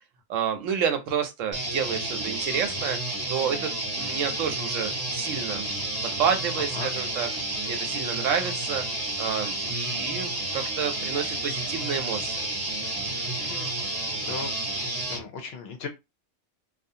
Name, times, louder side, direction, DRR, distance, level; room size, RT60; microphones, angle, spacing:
voice 1, 0.3-3.0 3.3-5.6 6.0-7.3 7.7-8.8 9.2-12.5, right 7 dB, 85° right, 1.0 m, -29 dB
sound 1, 1.5-15.2, right 2 dB, 20° right, 0.7 m, -31 dB
voice 2, 13.4-14.0 14.2-14.5 15.1-15.9, left 5 dB, 65° left, 0.7 m, -37 dB
2.5 x 2.3 x 2.7 m
omnidirectional pair, 1.3 m